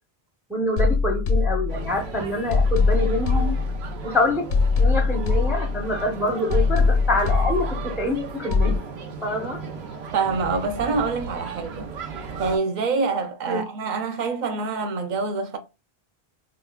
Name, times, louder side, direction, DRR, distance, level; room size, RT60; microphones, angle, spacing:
voice 1, 0.5-3.6 4.0-4.5 4.8-8.8 9.2-9.6 13.5-13.6, left 1 dB, ahead, 0.6 m, -26 dB
sound 1, 0.8-2.1 2.5-4.1 4.5-6.1 6.5-8.1 8.5-8.8, left 4 dB, 65° left, 0.8 m, -22 dB
sound 2, 1.7-12.6, right 5 dB, 85° right, 1.0 m, -36 dB
voice 2, 10.1-11.9 12.4-15.6, right 4 dB, 55° right, 0.7 m, -26 dB
5.0 x 2.2 x 2.2 m
omnidirectional pair, 1.0 m